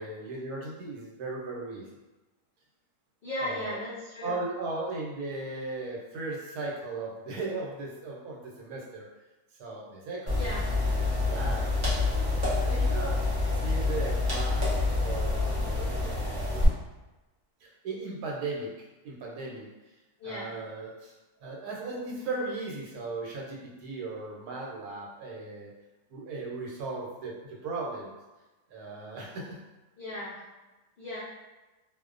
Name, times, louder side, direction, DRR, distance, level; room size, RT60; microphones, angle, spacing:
voice 1, 0.0-1.9 3.4-3.8 4.2-9.1 9.6-12.1 12.6-13.2 13.5-14.6 15.0-16.6 17.6-18.7 19.0-19.9 20.2-21.1 21.4-25.7 26.1-28.1 28.7-29.6, right 3 dB, 80° right, -3 dB, 1.1 m, -37 dB
voice 2, 3.2-4.4 10.3-10.6 20.2-20.5 30.0-30.4 31.0-31.2, left 1 dB, 75° left, -8 dB, 0.5 m, -36 dB
sound 1, 10.3-16.6, left 3 dB, 40° right, 0.8 m, -27 dB
2.5 x 2.1 x 2.4 m, 1.1 s
omnidirectional pair, 1.6 m